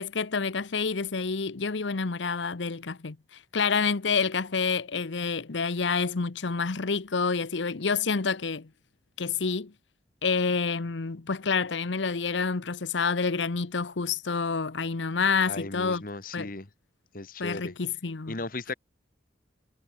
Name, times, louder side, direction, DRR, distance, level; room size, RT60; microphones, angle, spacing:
voice 1, 0.0-3.2 3.5-8.7 9.2-9.7 10.2-16.0 16.3-16.5 17.4-18.4, left 5 dB, 80° left, 0.9 m, -28 dB
voice 2, 15.5-16.7 17.1-17.7 18.3-18.7, left 2 dB, 50° left, 1.8 m, -36 dB
head